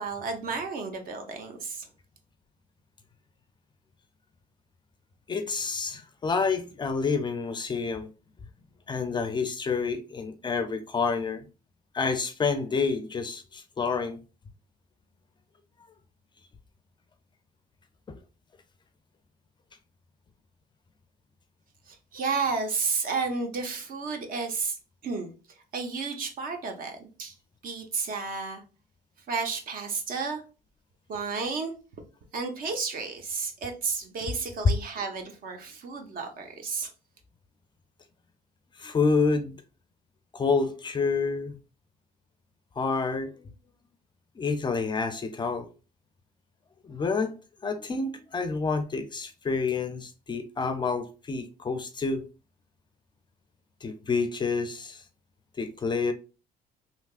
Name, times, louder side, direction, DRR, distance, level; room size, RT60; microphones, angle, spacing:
voice 1, 0.0-1.9 21.9-24.8 25.0-25.3 25.7-27.3 27.6-28.6 29.3-30.4 31.1-31.7 32.3-36.9, right 4 dB, 55° right, 0.8 m, -32 dB
voice 2, 5.3-8.1 8.9-11.4 11.9-14.2 34.6-34.7 38.8-39.6 40.3-41.6 42.8-43.5 44.4-45.7 46.8-47.3 47.6-52.2 53.8-55.0 55.6-56.1, left 4 dB, 25° left, 0.4 m, -28 dB
3.4 x 2.8 x 2.4 m
cardioid pair, 110°, 17 cm